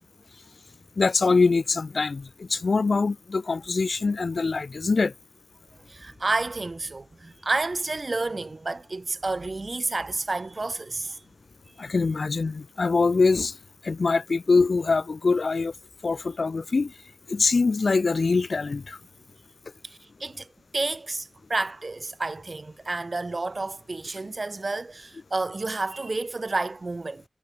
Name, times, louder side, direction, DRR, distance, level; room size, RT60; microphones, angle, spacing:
voice 1, 1.0-5.1 11.8-13.6 13.8-15.7 16.0-16.9 17.3-19.0, left 4 dB, 85° left, 0.3 m, -23 dB
voice 2, 5.9-11.2 19.8-20.5 20.7-27.2, right 3 dB, 60° right, 1.3 m, -30 dB
wide cardioid pair, 55°, 0 cm